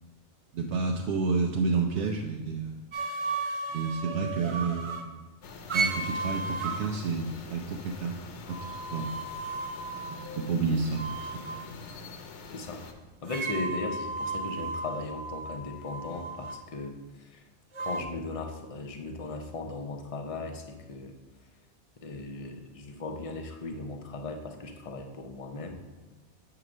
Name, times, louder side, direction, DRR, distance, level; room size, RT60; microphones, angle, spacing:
voice 1, 0.5-2.8 3.7-5.2 5.7-8.2 8.5-9.1 10.1-11.8, right 4 dB, 80° right, 1 dB, 0.9 m, -30 dB
sound 1, 2.9-5.1 5.7-6.9 8.5-10.6 10.9-11.7 13.3-16.6 17.7-18.0, right 3 dB, 55° right, 0.3 m, -34 dB
sound 2, 5.4-12.9, left 4 dB, 85° left, 1.0 m, -45 dB
voice 2, 13.2-17.5 17.8-21.2 22.0-25.8, left 3 dB, 40° left, 3 dB, 0.6 m, -37 dB
7.8 x 2.9 x 6.1 m, 1.3 s
omnidirectional pair, 1.2 m